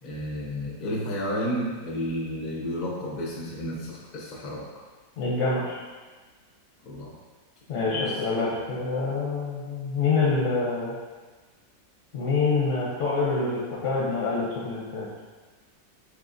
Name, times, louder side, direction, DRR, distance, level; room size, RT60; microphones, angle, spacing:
voice 1, 0.0-4.6 6.9-7.1 7.7-8.0, equal, 85° left, -4 dB, 0.3 m, -32 dB
voice 2, 5.2-5.8 7.7-10.9 12.1-15.1, left 4 dB, 70° left, -5 dB, 0.7 m, -26 dB
3.7 x 3.4 x 2.5 m, 1.4 s
omnidirectional pair, 1.9 m